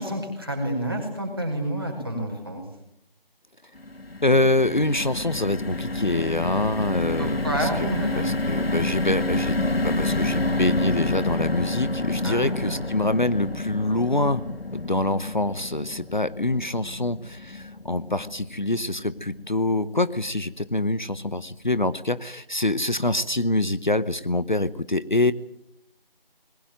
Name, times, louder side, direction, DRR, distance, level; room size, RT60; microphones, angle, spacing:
voice 1, 0.0-2.6 7.2-8.3 12.2-12.8, right 1 dB, 25° right, 2 dB, 5.1 m, -29 dB
sound 1, 3.8-20.1 20.5-20.6 20.9-21.1, left 2 dB, 85° left, 1.6 m, -29 dB
voice 2, 4.2-9.6 9.8-14.4 14.7-25.3, left 2 dB, 55° left, 15 dB, 1.0 m, -25 dB
21.5 x 21.0 x 9.1 m, 0.77 s
figure-of-eight pair, 180°, 29 cm